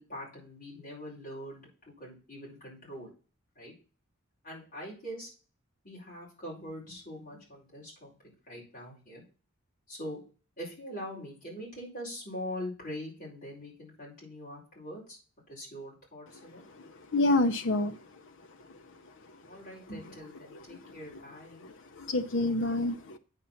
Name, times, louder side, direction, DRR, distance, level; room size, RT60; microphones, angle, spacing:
voice 1, 0.0-3.1 3.6-3.7 4.4-5.3 5.8-8.1 8.5-9.2 9.9-10.2 10.6-15.2 15.5-16.6 19.5-21.6, equal, 40° left, -4 dB, 4.7 m, -43 dB
voice 2, 16.8-18.0 20.7-20.9 21.6-23.2, left 2 dB, 55° left, 6 dB, 0.6 m, -28 dB
9.1 x 4.1 x 5.7 m, 0.37 s
head